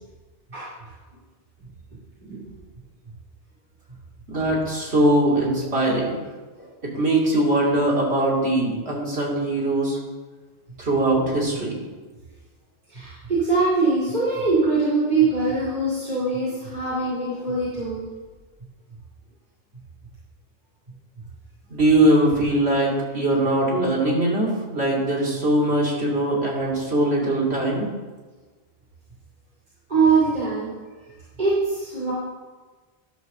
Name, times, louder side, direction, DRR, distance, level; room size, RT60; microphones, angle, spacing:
voice 1, 4.3-6.2 6.9-10.0 10.8-11.8 21.7-27.9, right 1 dB, 75° right, -4 dB, 2.9 m, -21 dB
voice 2, 12.9-18.1 29.9-30.7 31.4-32.1, right 3 dB, 45° right, -9 dB, 2.7 m, -22 dB
12.0 x 4.7 x 6.5 m, 1.3 s
omnidirectional pair, 1.1 m